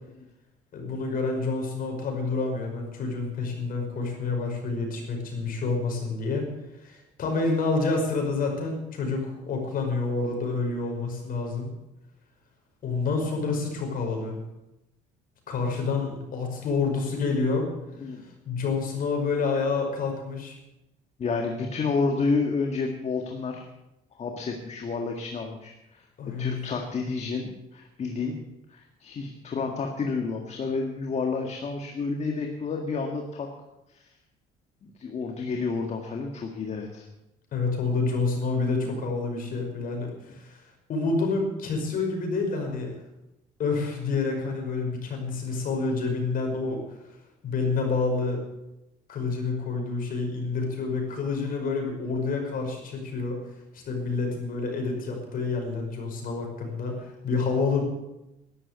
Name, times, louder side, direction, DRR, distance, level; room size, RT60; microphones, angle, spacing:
voice 1, 0.7-6.5 6.7-11.7 12.8-14.4 15.5-17.7 18.2-20.5 26.2-26.6 37.5-43.0 43.6-47.0 47.4-48.4 49.1-53.4 53.7-57.8, left 4 dB, 55° left, 2 dB, 5.5 m, -28 dB
voice 2, 21.2-23.6 24.2-26.0 26.4-28.4 28.7-33.5 33.9-34.1 35.0-37.1 38.9-39.0, left 4 dB, 40° left, 2 dB, 1.9 m, -30 dB
12.5 x 11.5 x 8.2 m, 0.92 s
cardioid pair, 110°, 17 cm